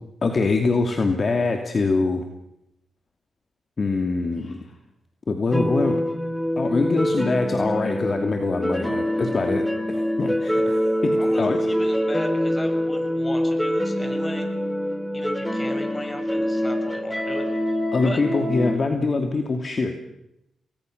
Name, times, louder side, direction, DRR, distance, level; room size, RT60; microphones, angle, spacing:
voice 1, 0.2-2.2 3.8-4.7 5.3-6.0 6.6-11.6 17.9-19.9, left 3 dB, 45° left, 5 dB, 2.7 m, -24 dB
sound 1, 5.5-18.8, equal, 5° left, 3.3 m, -25 dB
voice 2, 11.2-14.5 15.1-17.4 18.0-18.2, left 1 dB, 20° left, 5 dB, 7.1 m, -35 dB
29.0 x 21.0 x 6.7 m, 0.85 s
cardioid pair, 70°, 0 cm